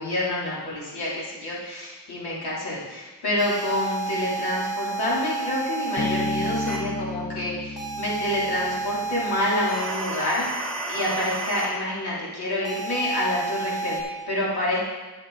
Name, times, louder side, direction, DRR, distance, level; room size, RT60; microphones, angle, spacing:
voice 1, 0.0-10.5 10.9-14.8, left 1 dB, 85° left, -6 dB, 3.5 m, -28 dB
sound 1, 3.4-6.8 7.8-11.7 12.6-14.0, right 3 dB, ahead, 3.0 m, -31 dB
Bass guitar, 6.0-9.4, left 3 dB, 30° left, 0.4 m, -32 dB
11.0 x 8.0 x 4.0 m, 1.2 s
cardioid pair, 100°, 38 cm